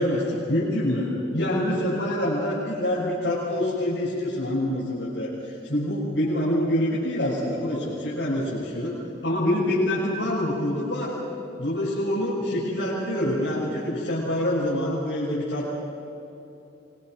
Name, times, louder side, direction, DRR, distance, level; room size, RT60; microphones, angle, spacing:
voice 1, 0.0-8.9 9.2-11.2 11.6-15.7, left 1 dB, 80° left, -8 dB, 6.9 m, -26 dB
26.0 x 24.0 x 6.3 m, 2.8 s
head